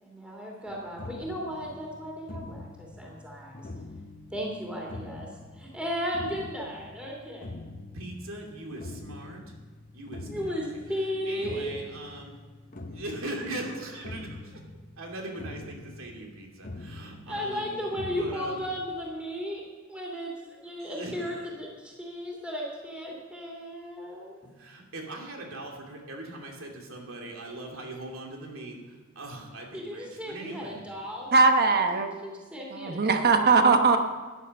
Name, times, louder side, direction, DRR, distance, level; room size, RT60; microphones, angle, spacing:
voice 1, 0.0-3.7 4.3-5.3 5.5-7.5 10.3-11.7 17.3-19.6 19.9-20.3 20.6-24.4 29.7-31.3 32.2-33.4, equal, 5° right, -2 dB, 2.9 m, -35 dB
sound 1, 0.7-18.9, left 2 dB, 45° left, 1.0 m, -44 dB
voice 2, 7.9-9.4 9.9-10.6 11.2-12.4 12.9-14.6 15.0-17.8 18.1-18.6 20.8-21.5 24.6-30.9, right 1 dB, 80° right, 1 dB, 2.8 m, -40 dB
voice 3, 31.3-32.1 32.7-34.0, right 4 dB, 50° right, 6 dB, 1.1 m, -20 dB
14.5 x 10.5 x 5.4 m, 1.4 s
head